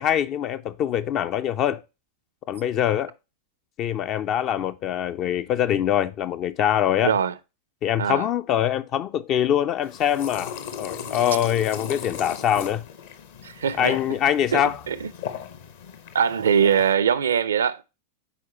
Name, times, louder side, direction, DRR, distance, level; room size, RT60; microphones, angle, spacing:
voice 1, 0.0-1.8 2.5-3.1 3.8-7.2 7.8-12.8 13.8-14.8, left 10 dB, 35° left, 0.4 m, -24 dB
voice 2, 7.0-7.3 8.0-8.3 13.4-14.0 14.5-14.6 14.9-15.1 16.1-17.8, right 7 dB, 65° right, 0.5 m, -22 dB
sound 1, 9.8-16.9, left 8 dB, 55° left, 0.9 m, -37 dB
8.2 x 4.7 x 2.9 m
figure-of-eight pair, 90°, 0 cm